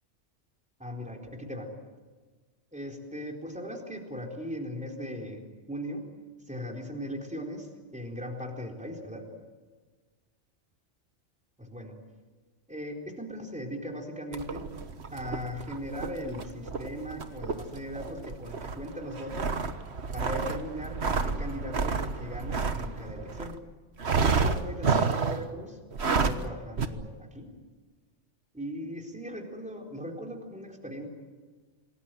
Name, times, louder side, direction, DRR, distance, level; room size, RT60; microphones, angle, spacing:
voice 1, 0.8-1.7 2.7-5.4 5.7-6.0 6.5-9.3 11.6-12.0 12.7-14.6 15.1-19.5 20.1-23.6 24.1-25.8 26.0-27.5 28.5-31.1, equal, 5° right, 1 dB, 4.2 m, -38 dB
sound 1, 14.3-23.6 24.0-25.5 25.9-26.5 26.8-26.9, right 5 dB, 60° right, 1.6 m, -30 dB
27.5 x 19.5 x 9.2 m, 1.4 s
omnidirectional pair, 1.3 m